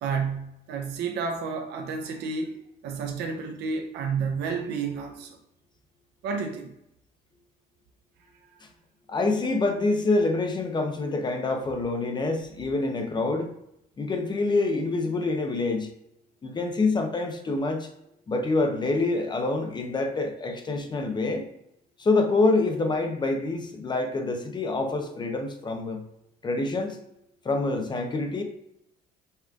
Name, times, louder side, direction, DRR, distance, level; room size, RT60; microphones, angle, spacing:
voice 1, 0.0-2.6 2.8-5.4 6.2-6.7, right 5 dB, 80° right, 3 dB, 0.6 m, -30 dB
voice 2, 9.1-13.5 14.0-15.9 16.4-17.9 18.3-21.5 22.0-26.0 26.4-27.0 27.4-28.4, left 3 dB, 25° left, 5 dB, 0.7 m, -26 dB
5.6 x 3.2 x 2.3 m, 0.80 s
cardioid pair, 110°, 17 cm